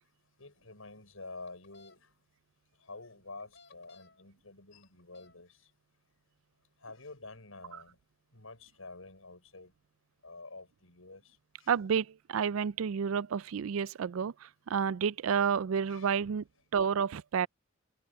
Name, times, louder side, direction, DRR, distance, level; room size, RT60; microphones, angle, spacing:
voice 1, 0.4-2.0 2.8-5.6 6.8-7.9 8.3-9.7 10.2-11.2 11.6-11.7 15.9-16.2, left 3 dB, 85° left, 6.5 m, -49 dB
bicycle horn toots comedy ish, 1.5-2.0 3.4-4.2 4.8-5.4, left 4 dB, 60° left, 5.6 m, -58 dB
voice 2, 11.7-16.4 16.7-17.5, right 7 dB, 80° right, 0.4 m, -30 dB
head